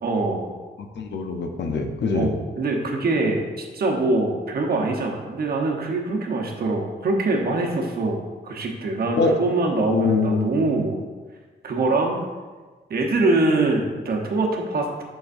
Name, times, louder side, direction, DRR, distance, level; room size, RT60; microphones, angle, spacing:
voice 1, 0.0-0.5 2.1-8.2 8.4-11.1 11.6-12.2 12.9-15.0, right 2 dB, 60° right, 0 dB, 1.0 m, -23 dB
voice 2, 0.8-2.3 9.2-9.3 9.9-10.5, left 4 dB, 75° left, 5 dB, 0.7 m, -23 dB
6.9 x 5.9 x 2.6 m, 1.4 s
wide cardioid pair, 120°, 18 cm